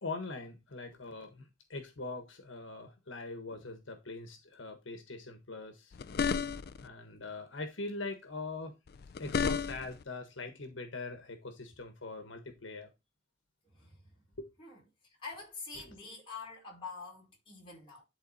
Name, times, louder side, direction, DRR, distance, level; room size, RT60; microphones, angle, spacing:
voice 1, 0.0-6.0 6.8-8.7 9.2-12.9 14.4-14.5, left 3 dB, 85° left, 1.4 m, -42 dB
sound 1, 5.9-6.9 8.9-10.0, left 6 dB, 55° left, 0.4 m, -33 dB
voice 2, 13.6-14.2 14.6-14.8 15.2-18.0, left 4 dB, 30° left, 4.8 m, -46 dB
11.5 x 4.0 x 4.1 m
head